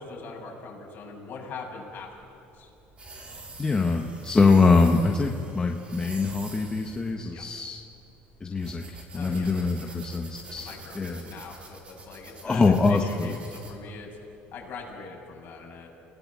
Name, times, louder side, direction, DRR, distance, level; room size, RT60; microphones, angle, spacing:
voice 1, 0.0-2.3 2.5-2.7 7.3-7.4 9.1-10.0 10.6-14.2 14.5-15.9, left 4 dB, 45° left, -1 dB, 7.3 m, -42 dB
sound 1, 2.0-14.9, right 2 dB, 25° right, 4.0 m, -46 dB
voice 2, 3.6-7.8 8.4-11.2 12.4-13.3, left 4 dB, 20° left, 2 dB, 1.4 m, -23 dB
29.5 x 18.5 x 7.5 m, 2.9 s
cardioid pair, 120°, 4 cm